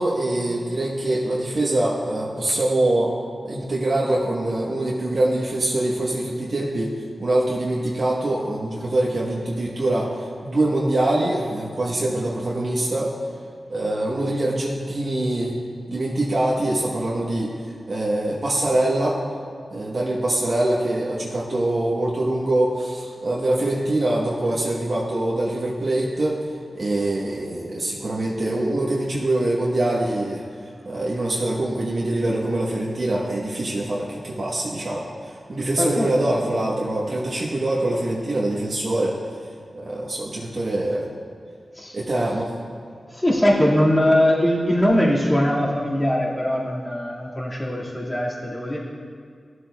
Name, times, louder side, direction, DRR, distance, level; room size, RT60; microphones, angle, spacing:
voice 1, 0.0-3.1 3.4-6.9 7.2-13.1 13.7-15.6 15.9-19.2 19.7-26.4 26.7-39.2 39.7-41.1 41.9-42.5, right 1 dB, 60° right, -5 dB, 1.2 m, -24 dB
voice 2, 35.8-36.5 41.7-42.0 43.1-48.8, equal, 25° left, -5 dB, 2.1 m, -21 dB
14.0 x 7.8 x 2.3 m, 2.2 s
cardioid pair, 45°, 0 cm